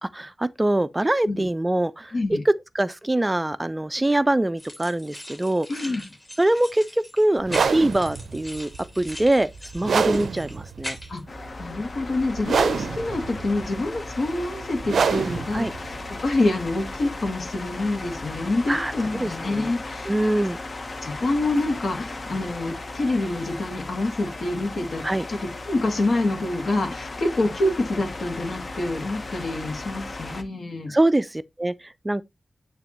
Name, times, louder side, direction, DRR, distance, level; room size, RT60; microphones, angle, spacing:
voice 1, 0.0-6.0 6.4-11.0 15.5-15.7 18.7-19.7 20.0-20.6 25.0-25.2 30.9-32.2, right 1 dB, 20° right, 0.4 m, -24 dB
sound 1, 4.6-11.2, left 1 dB, 20° left, 3.0 m, -40 dB
voice 2, 5.7-6.0 11.1-11.2 11.6-16.0 16.2-20.1 20.4-20.5 21.0-25.0 25.3-25.4 25.7-30.9, left 2 dB, 65° left, 2.1 m, -26 dB
sound 2, 7.4-17.3, right 6 dB, 85° right, 0.5 m, -27 dB
sound 3, 11.3-30.4, left 2 dB, 45° left, 0.8 m, -36 dB
9.2 x 3.4 x 3.0 m
wide cardioid pair, 90°, 0 cm